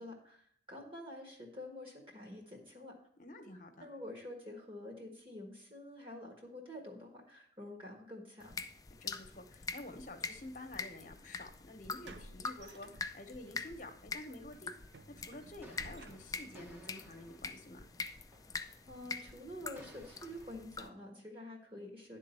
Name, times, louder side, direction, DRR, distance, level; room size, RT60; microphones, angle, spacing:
voice 1, 0.0-2.9 3.8-8.5 18.8-22.2, left 1 dB, 30° right, 1 dB, 1.5 m, -48 dB
voice 2, 3.2-3.9 8.9-14.7 15.1-17.9, left 1 dB, 45° left, 6 dB, 1.1 m, -50 dB
sound 1, 8.4-20.9, left 4 dB, 20° left, 0.4 m, -45 dB
sound 2, 12.0-13.5 13.9-14.1 14.5-16.6, right 2 dB, 80° right, 0.7 m, -55 dB
sound 3, 15.6-20.5, equal, 10° right, 1.0 m, -59 dB
10.5 x 3.8 x 7.0 m, 0.62 s
head